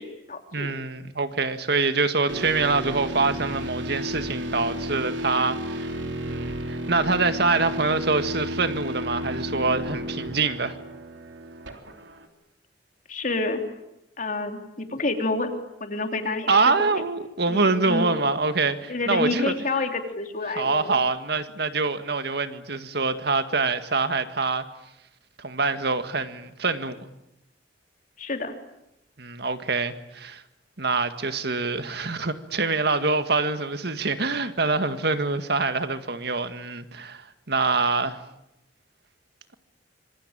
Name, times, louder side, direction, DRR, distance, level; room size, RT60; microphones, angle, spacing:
voice 1, 0.0-0.7 13.1-13.6 14.2-15.5 15.8-16.7 17.5-18.1 18.9-20.9 28.2-28.5, left 2 dB, 45° left, 5 dB, 3.3 m, -28 dB
voice 2, 0.5-5.9 6.3-10.8 16.5-19.5 20.6-24.7 25.4-27.0 29.2-30.4 30.8-38.2, right 3 dB, 60° right, 9 dB, 1.9 m, -25 dB
sound 1, 2.3-12.3, equal, 90° right, 3.4 m, -33 dB
26.0 x 25.0 x 8.9 m, 0.86 s
head